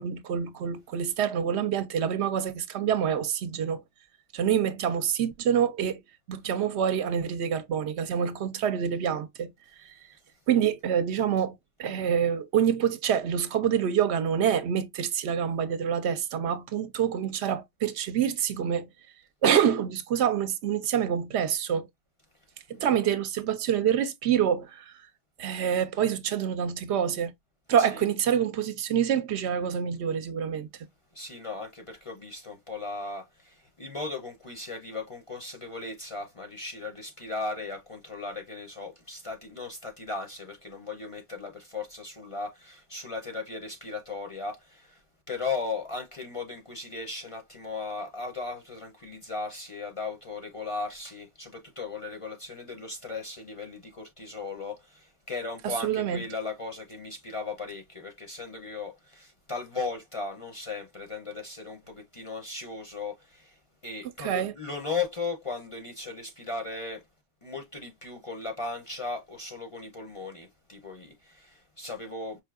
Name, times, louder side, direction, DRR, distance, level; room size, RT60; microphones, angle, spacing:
voice 1, 0.0-3.8 4.3-6.0 6.3-9.5 9.8-10.0 10.5-18.9 19.4-21.9 22.7-24.9 25.4-27.3 27.7-30.7 55.6-56.2 64.2-64.5, right 8 dB, 70° right, 0.8 m, -26 dB
voice 2, 22.7-23.0 27.8-28.0 31.1-45.0 45.3-67.0 67.4-72.4, left 3 dB, 35° left, 0.6 m, -37 dB
4.9 x 2.6 x 2.3 m
omnidirectional pair, 1.2 m